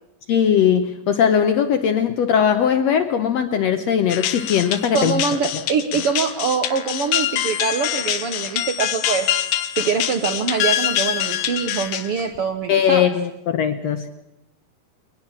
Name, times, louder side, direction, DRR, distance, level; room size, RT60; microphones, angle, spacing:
voice 1, 0.3-5.2 12.7-14.1, left 8 dB, 70° left, 8 dB, 1.7 m, -19 dB
sound 1, 4.1-12.4, left 11 dB, 85° left, 2.8 m, -25 dB
voice 2, 4.9-9.3 9.8-13.1, right 5 dB, 65° right, 6 dB, 1.5 m, -24 dB
22.0 x 20.0 x 7.3 m, 0.85 s
omnidirectional pair, 3.9 m